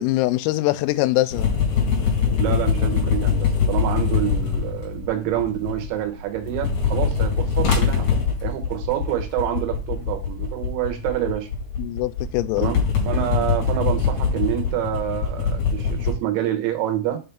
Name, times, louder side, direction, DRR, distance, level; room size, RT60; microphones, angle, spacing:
voice 1, 0.0-1.5 11.8-12.7, left 18 dB, 85° left, 3.2 m, -23 dB
sound 1, 1.3-6.0 6.3-16.1, left 6 dB, 55° left, 2.9 m, -23 dB
voice 2, 2.4-8.1 8.4-11.5 12.6-12.8 13.1-17.2, right 12 dB, 90° right, 3.8 m, -27 dB
7.6 x 3.4 x 5.5 m
omnidirectional pair, 6.0 m